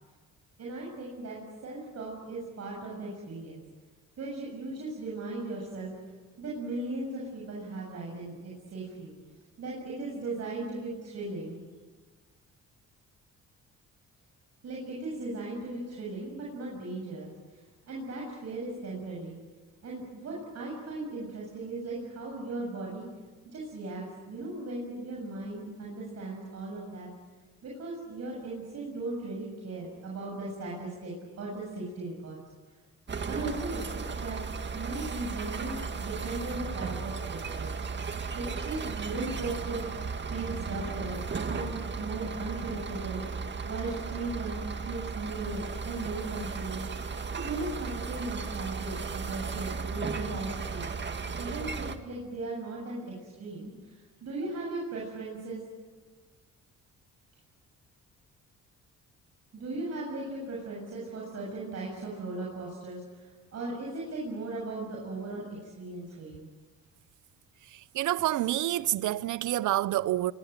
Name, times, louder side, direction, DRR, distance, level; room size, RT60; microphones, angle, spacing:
voice 1, 0.6-3.6 4.2-5.9 6.4-9.2 9.6-11.6 14.6-17.6 17.9-19.4 19.8-23.1 23.5-27.1 27.6-32.4 33.3-34.4 34.7-37.8 38.3-39.9 40.3-41.2 41.5-43.2 43.6-46.8 47.3-51.0 51.4-55.7 59.5-66.5, right 2 dB, 55° right, 7.4 m, -37 dB
sound 1, 33.1-52.0, right 5 dB, 35° right, 2.0 m, -35 dB
voice 2, 67.7-70.3, right 14 dB, 75° right, 0.8 m, -28 dB
26.0 x 23.0 x 9.1 m
cardioid pair, 90°, 30 cm